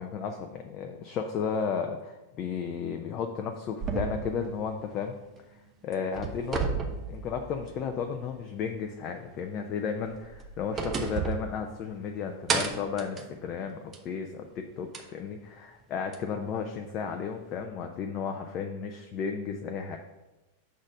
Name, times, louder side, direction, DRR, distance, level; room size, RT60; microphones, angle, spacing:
voice 1, 0.0-5.1 5.8-20.0, left 6 dB, 35° left, 4 dB, 0.5 m, -34 dB
sound 1, 3.8-5.6 5.9-7.9 8.3-8.4 10.0-12.1 12.5-14.2 14.9-15.0 16.1-16.2, right 5 dB, 25° right, 0.8 m, -33 dB
6.3 x 4.0 x 5.9 m, 1.0 s
figure-of-eight pair, 90°, 0 cm